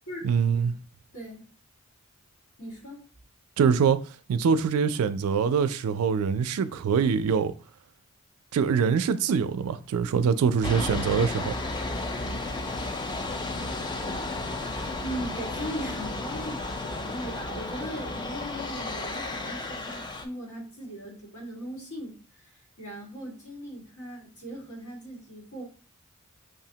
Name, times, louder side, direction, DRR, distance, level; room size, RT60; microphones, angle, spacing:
voice 1, 0.2-0.7 3.6-4.0 4.3-7.5 8.5-11.5, right 6 dB, 80° right, 0.3 m, -24 dB
voice 2, 1.1-1.4 2.6-3.0 15.0-22.5 22.8-25.6, equal, 85° left, 1.7 m, -39 dB
sound 1, 10.6-20.3, left 2 dB, 20° left, 0.4 m, -33 dB
5.2 x 2.1 x 2.7 m
head